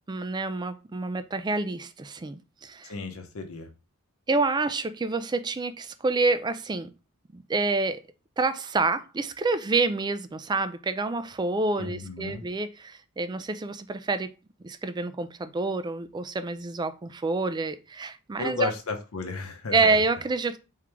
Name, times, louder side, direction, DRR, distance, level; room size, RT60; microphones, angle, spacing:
voice 1, 0.1-2.9 4.3-6.9 7.3-8.0 8.4-14.3 14.6-18.7 19.7-20.6, right 3 dB, 20° right, 0.3 m, -28 dB
voice 2, 2.8-3.7 11.8-12.4 18.4-20.0, left 3 dB, 75° left, 0.8 m, -33 dB
3.6 x 3.1 x 3.4 m
head